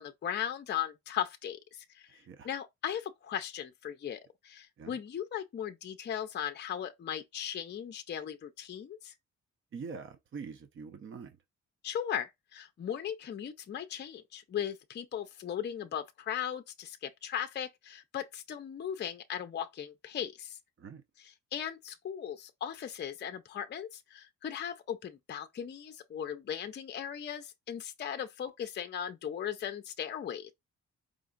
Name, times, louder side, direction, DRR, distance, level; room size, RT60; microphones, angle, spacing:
voice 1, 0.0-2.1 2.4-9.1 11.8-20.6 21.5-30.5, left 9 dB, 35° left, 0.5 m, -38 dB
voice 2, 2.1-2.5 4.8-5.0 9.7-11.4 20.8-21.0, right 5 dB, 45° right, 0.7 m, -44 dB
4.9 x 2.3 x 3.8 m
cardioid pair, 110°, 29 cm